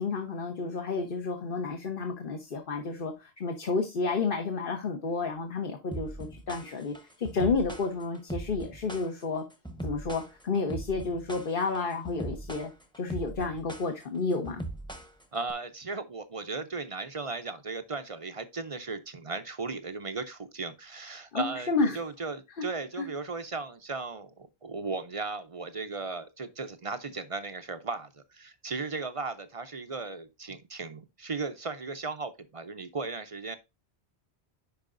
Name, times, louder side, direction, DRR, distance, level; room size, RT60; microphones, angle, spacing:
voice 1, 0.0-9.4 9.8-12.7 13.0-14.6 21.3-22.0 23.0-23.1, left 4 dB, 55° left, 1.2 m, -31 dB
sound 1, 5.9-15.5, right 2 dB, 5° left, 0.9 m, -40 dB
voice 2, 15.3-33.6, right 3 dB, 35° right, 0.6 m, -36 dB
10.0 x 4.9 x 2.5 m
omnidirectional pair, 1.1 m